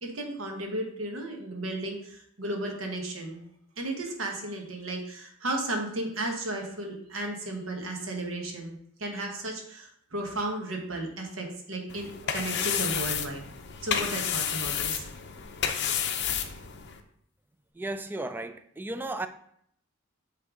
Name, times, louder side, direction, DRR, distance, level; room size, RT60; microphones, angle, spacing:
voice 1, 0.0-3.4 3.8-13.4 13.8-15.0, right 1 dB, 80° right, 1.2 m, -34 dB
sound 1, 11.9-17.0, left 8 dB, 60° left, 0.6 m, -31 dB
voice 2, 17.7-19.3, right 2 dB, 10° right, 0.3 m, -34 dB
8.0 x 3.3 x 3.7 m
head